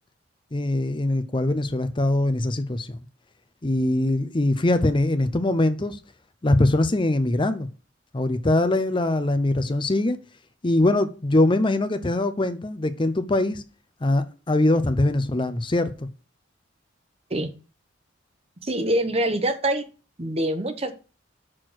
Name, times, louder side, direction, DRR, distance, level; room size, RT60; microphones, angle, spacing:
voice 1, 0.5-3.0 3.6-6.0 6.4-7.7 8.1-10.2 10.6-13.6 14.0-16.1, left 1 dB, 25° left, 0.6 m, -22 dB
voice 2, 18.7-19.8 20.2-20.9, right 1 dB, 30° right, 1.0 m, -24 dB
6.6 x 6.2 x 6.2 m
head